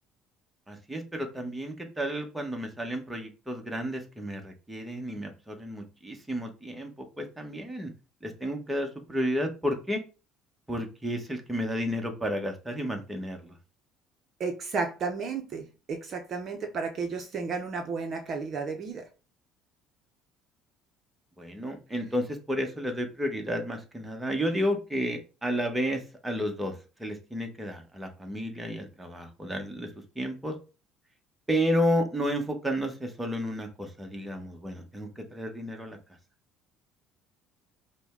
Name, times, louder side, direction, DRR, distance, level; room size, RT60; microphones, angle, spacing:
voice 1, 0.7-6.9 7.2-7.9 8.2-10.0 10.7-13.5 21.4-26.7 27.0-29.9 30.2-30.5 31.5-36.0, equal, 10° right, 1.1 m, -31 dB
voice 2, 14.4-19.1, right 4 dB, 45° right, 0.7 m, -33 dB
5.0 x 2.2 x 3.6 m
supercardioid pair, 100°, 0 cm